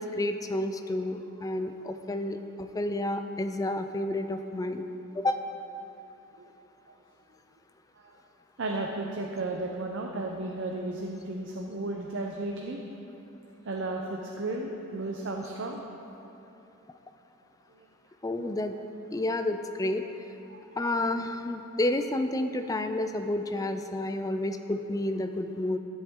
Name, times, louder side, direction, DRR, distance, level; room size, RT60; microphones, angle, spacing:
voice 1, 0.0-4.8 5.2-5.4 18.2-18.8 19.1-20.0 20.8-25.8, left 1 dB, 15° left, 8 dB, 0.4 m, -30 dB
voice 2, 8.6-12.8 13.6-15.8 17.7-17.9 20.5-20.8, right 2 dB, 60° right, 1 dB, 0.7 m, -34 dB
13.0 x 8.0 x 3.7 m, 3.0 s
head